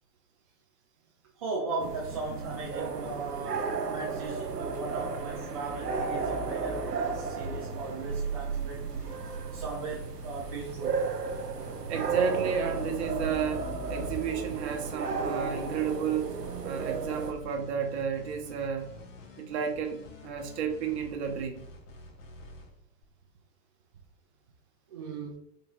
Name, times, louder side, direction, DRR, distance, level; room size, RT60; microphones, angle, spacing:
voice 1, 1.4-11.0 14.0-14.1 24.9-25.4, right 3 dB, 25° right, -4 dB, 0.3 m, -38 dB
sound 1, 1.8-17.3, right 4 dB, 85° right, 0.6 m, -34 dB
sound 2, 8.9-23.0, left 1 dB, 55° left, 0.9 m, -49 dB
voice 2, 11.9-16.4 16.6-18.9 19.4-21.7, right 7 dB, 45° right, 4 dB, 0.8 m, -32 dB
3.7 x 3.7 x 2.7 m, 0.70 s
figure-of-eight pair, 95°, 47 cm